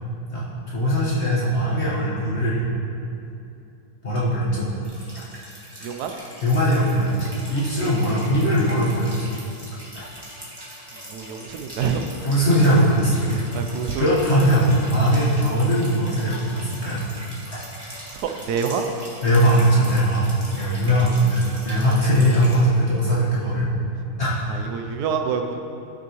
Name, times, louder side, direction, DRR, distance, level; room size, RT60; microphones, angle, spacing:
voice 1, 0.3-2.7 4.0-4.6 5.1-5.2 6.4-9.3 9.9-10.1 12.2-13.5 14.0-17.0 17.5-18.0 19.2-23.7 24.2-24.3, equal, 45° left, -8 dB, 1.5 m, -20 dB
sound 1, 4.8-22.6, equal, 15° right, 1.5 m, -41 dB
voice 2, 11.1-12.0 13.3-14.1 18.1-18.8 24.5-25.6, right 7 dB, 85° right, 5 dB, 1.1 m, -27 dB
13.0 x 6.1 x 3.0 m, 2.8 s
omnidirectional pair, 1.6 m